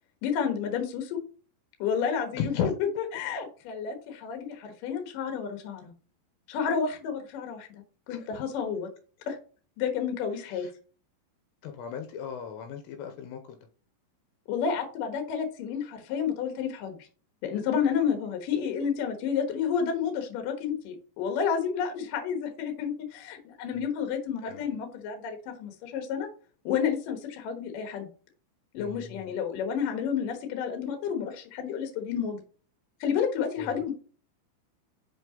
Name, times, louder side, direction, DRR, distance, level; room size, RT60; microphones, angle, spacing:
voice 1, 0.2-1.2 1.8-2.5 3.0-5.9 6.5-8.9 9.3-9.4 9.8-10.7 14.5-17.0 17.4-26.3 26.6-28.1 28.7-32.4 33.0-33.9, left 7 dB, 65° left, 5 dB, 2.4 m, -30 dB
voice 2, 2.4-2.7 8.1-8.3 10.5-10.7 11.6-13.6 24.4-24.6 28.8-29.2 33.6-33.7, left 7 dB, 80° left, 5 dB, 2.9 m, -35 dB
5.8 x 5.7 x 3.7 m, 0.38 s
omnidirectional pair, 5.2 m